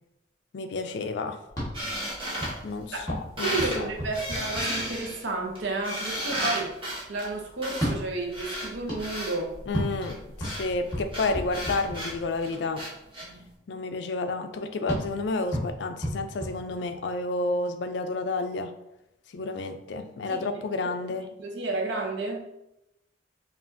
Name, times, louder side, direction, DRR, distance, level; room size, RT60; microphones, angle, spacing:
voice 1, 0.5-1.4 2.6-3.9 9.7-12.9 13.7-18.7 19.3-21.3, left 3 dB, 65° left, 8 dB, 0.4 m, -30 dB
sound 1, 1.5-5.3 7.7-12.5 14.9-17.3, equal, 20° left, 1.4 m, -35 dB
sound 2, 1.7-3.1 3.4-3.8 4.1-9.3 10.0-13.3, equal, 25° right, 1.0 m, -33 dB
voice 2, 3.4-6.7 7.1-9.6 13.2-13.5 20.3-20.5 21.4-22.5, right 3 dB, 75° right, 1 dB, 0.7 m, -31 dB
5.6 x 2.4 x 2.6 m, 0.88 s
head